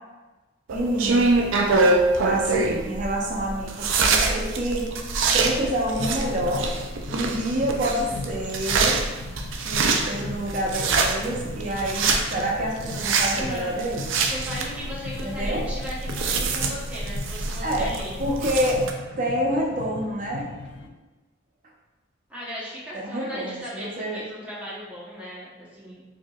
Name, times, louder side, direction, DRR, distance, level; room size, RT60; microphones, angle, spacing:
voice 1, 0.7-1.3 2.2-4.8 5.3-6.7 7.1-9.0 9.6-14.0 15.2-15.6 17.6-17.9 18.2-18.8 19.1-20.4 22.9-24.2, right 1 dB, 40° right, -2 dB, 0.7 m, -27 dB
sound 1, 0.7-18.9, right 3 dB, 85° right, 0.4 m, -25 dB
sound 2, 5.2-20.9, left 3 dB, 60° left, 0.3 m, -39 dB
voice 2, 13.3-13.7 14.3-18.2 22.3-26.0, equal, 5° right, -8 dB, 1.0 m, -36 dB
4.5 x 2.8 x 2.4 m, 1.2 s
head